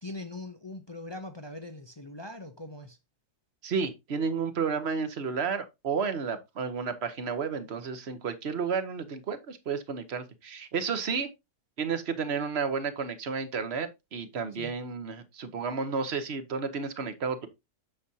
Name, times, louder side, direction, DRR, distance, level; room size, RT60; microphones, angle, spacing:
voice 1, 0.0-3.0 14.5-14.7, left 2 dB, 45° left, 0.3 m, -41 dB
voice 2, 3.6-11.3 11.8-17.5, right 5 dB, 45° right, 1.1 m, -32 dB
7.5 x 6.8 x 2.8 m
omnidirectional pair, 1.7 m